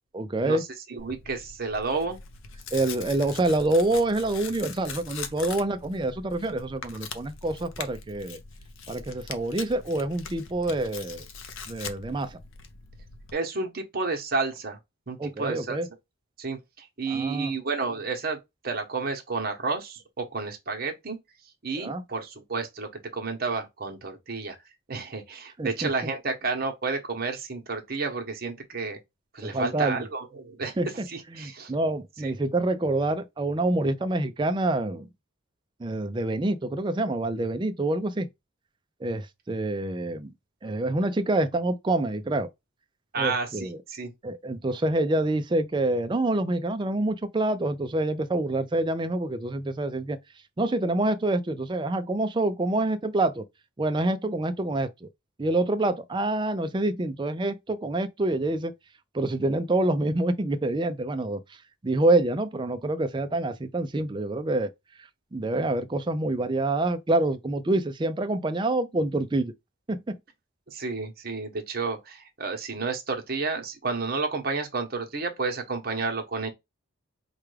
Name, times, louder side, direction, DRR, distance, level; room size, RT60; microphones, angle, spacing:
voice 1, 0.1-0.6 2.7-8.4 8.9-11.2 11.7-12.4 15.2-15.9 17.1-17.5 21.8-22.0 25.6-25.9 29.4-30.1 30.8-31.0 31.4-35.1 35.8-38.3 39.0-40.3 40.6-42.5 43.2-43.8 44.2-50.2 50.6-53.4 53.8-55.1 55.4-58.7 59.1-61.4 61.8-64.7 65.3-69.5 69.9-70.2, right 2 dB, 20° right, 0.4 m, -26 dB
voice 2, 0.9-2.2 13.3-14.8 15.1-15.8 16.4-18.4 18.6-21.2 21.6-24.6 24.9-29.0 29.3-30.8 31.1-31.7 32.2-32.3 43.1-44.1 70.7-76.5, right 4 dB, 45° right, 0.9 m, -31 dB
Tearing, 1.0-13.3, left 5 dB, 65° left, 0.6 m, -42 dB
4.7 x 2.3 x 3.2 m
head